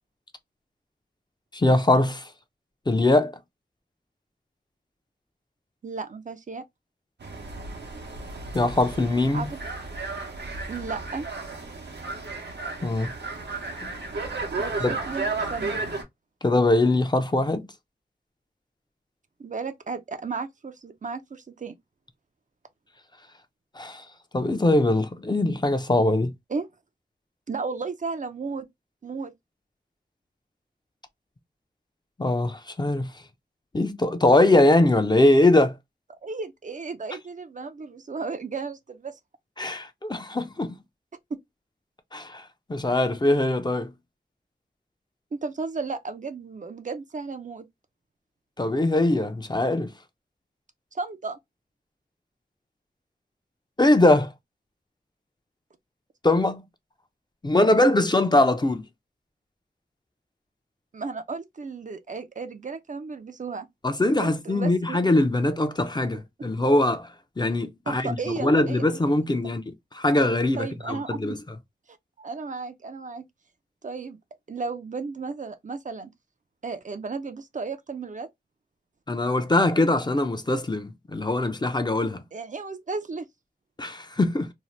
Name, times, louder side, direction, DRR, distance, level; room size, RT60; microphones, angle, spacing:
voice 1, 1.5-2.3 2.9-3.3 8.5-9.5 12.8-13.1 13.8-13.9 14.8-14.9 16.4-17.7 23.8-24.0 24.3-26.3 32.2-33.1 33.7-35.7 39.6-40.8 42.1-42.4 42.7-43.9 48.6-49.9 53.8-54.3 56.2-56.6 57.4-58.8 63.8-67.1 67.4-69.6 69.9-71.4 79.1-82.2 83.8-84.5, left 2 dB, 25° left, 0.5 m, -22 dB
voice 2, 5.8-6.6 9.3-9.6 10.7-11.3 14.6-15.8 19.4-21.7 26.5-26.7 27.5-28.7 29.0-29.3 36.2-39.2 45.3-47.6 50.9-51.4 60.9-63.7 64.2-65.0 67.9-68.8 69.4-69.5 70.5-71.2 72.2-73.2 73.8-74.2 74.5-76.1 76.6-78.3 82.3-83.3, right 4 dB, 50° right, 0.4 m, -34 dB
sound 1, 7.2-16.0, right 3 dB, 85° right, 0.8 m, -33 dB
2.7 x 2.0 x 3.0 m
wide cardioid pair, 60°, 17 cm